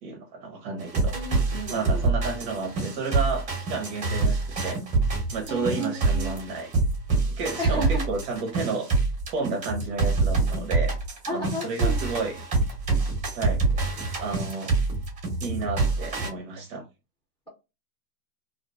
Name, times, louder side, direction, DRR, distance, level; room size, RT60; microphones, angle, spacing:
voice 1, 0.0-1.1 1.7-4.8 5.3-6.7 7.3-8.9 9.3-11.0 11.3-12.4 13.3-13.9 14.2-14.7 15.4-16.8, right 4 dB, 40° right, 0.6 m, -31 dB
sound 1, 0.8-16.3, right 3 dB, 15° right, 0.9 m, -26 dB
voice 2, 1.1-2.1 5.5-6.4 7.6-8.1 11.3-12.1, right 1 dB, 10° left, 0.9 m, -33 dB
2.4 x 2.2 x 2.3 m
hypercardioid pair, 135°, 46 cm